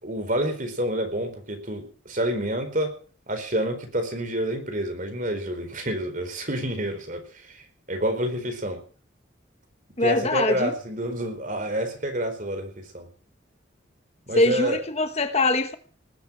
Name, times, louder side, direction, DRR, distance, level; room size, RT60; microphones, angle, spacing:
voice 1, 0.0-3.0 3.3-8.8 10.0-13.1 14.3-14.8, right 1 dB, 45° right, 6 dB, 4.6 m, -28 dB
voice 2, 10.0-10.7 14.4-15.8, left 2 dB, 35° left, 9 dB, 1.2 m, -22 dB
19.5 x 9.5 x 7.4 m, 0.41 s
head